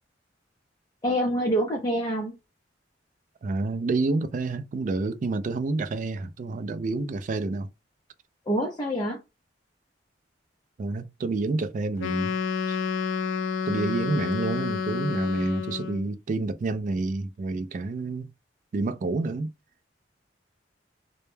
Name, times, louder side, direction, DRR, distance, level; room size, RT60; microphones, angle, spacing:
voice 1, 1.0-2.3 8.5-9.2, equal, 25° left, 0.5 m, -26 dB
voice 2, 3.4-7.7 10.8-12.3 12.7-12.8 13.7-18.3 18.7-19.5, right 3 dB, 45° right, 0.3 m, -28 dB
Wind instrument woodwind instrument, 12.0-16.1, left 6 dB, 85° left, 0.4 m, -29 dB
2.1 x 2.0 x 3.1 m
head